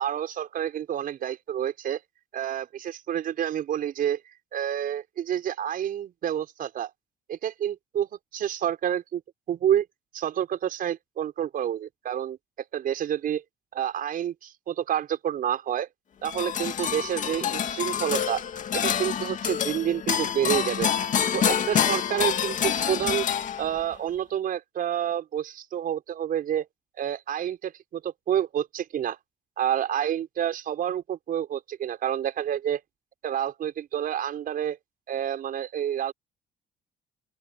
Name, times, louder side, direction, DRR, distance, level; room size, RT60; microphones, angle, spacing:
voice 1, 0.0-2.0 2.3-4.2 4.5-6.9 7.3-9.2 9.5-9.9 10.1-12.4 12.7-13.4 13.7-15.9 16.2-18.4 18.7-20.9 21.3-23.3 23.6-26.7 27.0-29.2 29.6-32.8 33.2-34.8 35.1-36.1, right 10 dB, 55° right, 5.8 m, -29 dB
sound 1, 16.2-23.9, left 8 dB, 50° left, 2.1 m, -27 dB
open air
cardioid pair, 110°, 17 cm